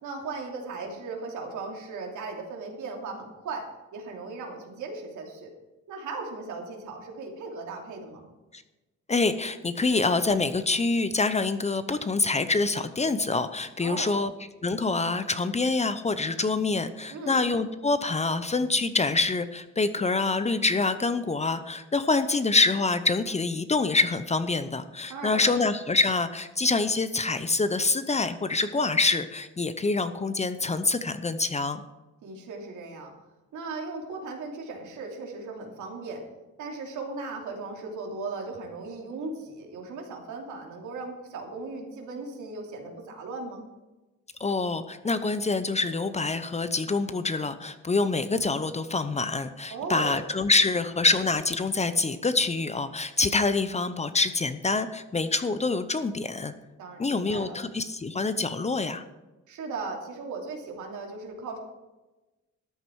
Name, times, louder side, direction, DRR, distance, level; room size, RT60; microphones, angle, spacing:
voice 1, 0.0-3.6 3.9-5.5 5.9-8.3 13.8-14.2 17.1-17.4 25.1-25.6 32.2-33.1 33.5-36.2 36.6-43.6 49.7-50.2 56.8-57.6 59.5-61.6, right 3 dB, 80° right, 1 dB, 2.8 m, -37 dB
voice 2, 9.1-14.3 14.6-31.8 44.4-56.5 57.0-59.0, left 3 dB, 20° left, 11 dB, 0.7 m, -26 dB
13.0 x 8.9 x 4.7 m, 1.1 s
cardioid pair, 90°, 30 cm